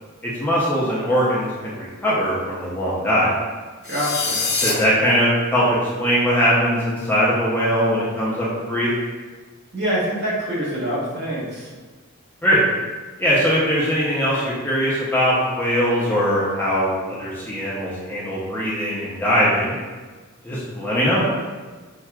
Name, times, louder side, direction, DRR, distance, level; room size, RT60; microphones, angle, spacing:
voice 1, 0.2-3.3 4.6-8.9 12.4-12.6 13.2-19.7 20.4-21.3, equal, 10° left, -8 dB, 0.6 m, -21 dB
sound 1, 3.8-4.7, left 4 dB, 45° left, 0.7 m, -23 dB
voice 2, 3.8-4.5 9.7-11.7, equal, 50° right, -7 dB, 1.1 m, -25 dB
5.8 x 2.3 x 2.3 m, 1.3 s
head